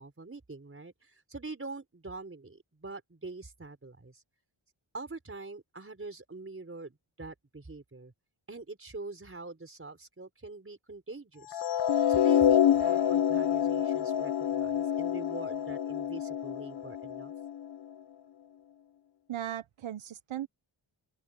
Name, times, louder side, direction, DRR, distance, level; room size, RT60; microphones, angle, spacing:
voice 1, 0.0-4.2 4.9-8.1 8.5-11.6 12.1-17.3, right 3 dB, 25° right, 4.5 m, -44 dB
sound 1, 11.5-17.7, left 9 dB, 55° left, 0.6 m, -27 dB
voice 2, 19.3-20.5, right 11 dB, 80° right, 0.8 m, -37 dB
open air
wide cardioid pair, 130°, 47 cm